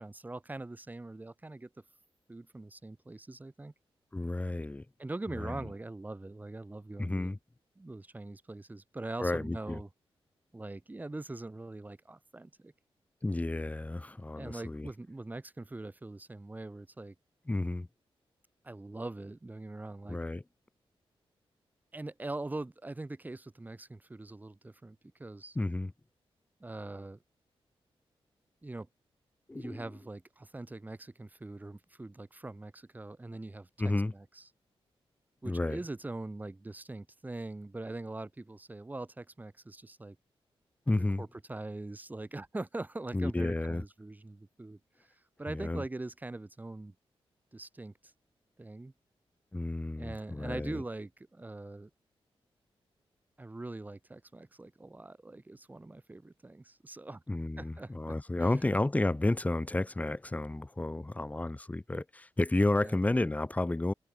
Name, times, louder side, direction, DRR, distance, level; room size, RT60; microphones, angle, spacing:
voice 1, 0.0-1.7 2.3-3.7 5.0-7.3 7.8-9.9 10.5-12.7 14.3-17.1 18.6-20.2 21.9-25.6 26.6-27.2 28.6-28.9 29.5-33.7 34.1-34.4 35.4-40.2 41.2-44.8 45.4-46.9 47.5-47.9 48.6-48.9 50.0-51.9 53.4-57.2 57.6-57.9 62.8-63.0, right 2 dB, 15° right, 4.6 m, -42 dB
voice 2, 4.1-4.8 5.3-5.6 7.0-7.4 9.2-9.8 13.2-14.9 17.5-17.9 20.1-20.4 25.5-25.9 29.5-29.8 33.8-34.1 35.4-35.8 40.9-41.2 43.1-43.8 45.5-45.8 49.5-50.8 57.3-63.9, left 2 dB, 15° left, 4.5 m, -31 dB
wide cardioid pair, 145°, 10 cm